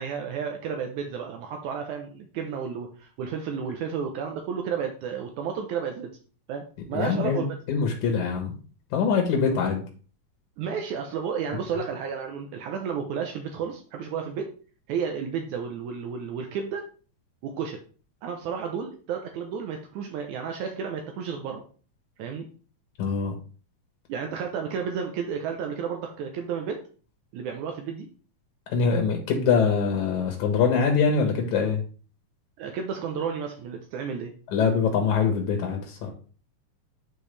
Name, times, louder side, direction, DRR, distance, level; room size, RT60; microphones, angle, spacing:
voice 1, 0.0-6.1 6.5-7.6 9.4-9.6 10.6-14.5 14.9-16.9 17.4-17.8 18.2-21.6 22.2-22.5 24.1-26.8 27.3-28.1 32.6-34.3, right 6 dB, 75° right, 3 dB, 2.1 m, -32 dB
voice 2, 6.9-8.5 8.9-9.8 23.0-23.3 28.7-31.8 34.5-36.1, left 5 dB, 75° left, 2 dB, 2.6 m, -24 dB
10.5 x 4.5 x 3.3 m, 0.40 s
omnidirectional pair, 3.5 m